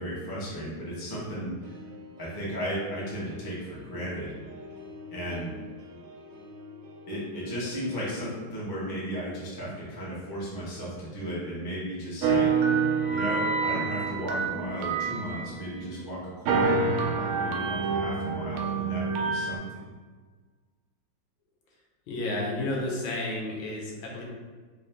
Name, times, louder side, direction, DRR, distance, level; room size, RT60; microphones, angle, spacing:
voice 1, 0.0-1.5 2.2-4.3 5.1-5.5 7.1-12.5 13.1-19.6, equal, 25° left, -7 dB, 0.5 m, -35 dB
sound 1, 1.6-8.3, left 2 dB, 70° right, 1.0 m, -47 dB
sound 2, 12.2-16.0 16.5-19.6, right 5 dB, 90° right, 1.4 m, -27 dB
voice 2, 22.1-24.2, left 1 dB, 75° left, -2 dB, 1.5 m, -31 dB
3.9 x 2.6 x 3.4 m, 1.4 s
omnidirectional pair, 2.3 m